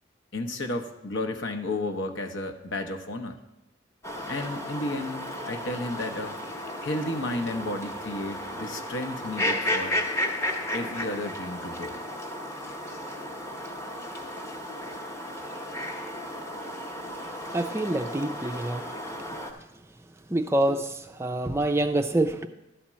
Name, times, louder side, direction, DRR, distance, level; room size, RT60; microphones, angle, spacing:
voice 1, 0.3-3.4 4.3-6.4 6.8-10.0 10.7-12.0, left 2 dB, 70° left, 5 dB, 0.9 m, -32 dB
sound 1, 4.0-19.5, left 1 dB, 15° left, 0.9 m, -34 dB
voice 2, 17.5-18.8 20.3-20.9 21.2-22.5, right 1 dB, 15° right, 6 dB, 0.4 m, -26 dB
11.5 x 4.3 x 7.3 m, 0.94 s
head